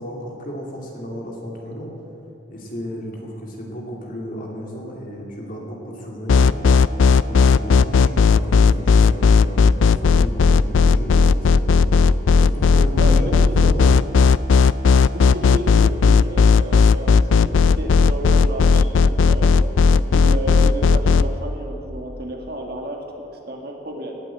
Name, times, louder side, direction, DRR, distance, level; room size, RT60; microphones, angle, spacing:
voice 1, 0.0-1.9 2.5-6.9 7.2-11.8 12.4-13.8, equal, 45° left, -2 dB, 2.8 m, -33 dB
sound 1, 6.3-21.2, left 5 dB, 80° left, 0.4 m, -14 dB
voice 2, 13.0-13.9 15.1-19.5 20.0-24.1, right 1 dB, 55° right, 1 dB, 1.9 m, -32 dB
18.0 x 8.3 x 7.8 m, 2.8 s
head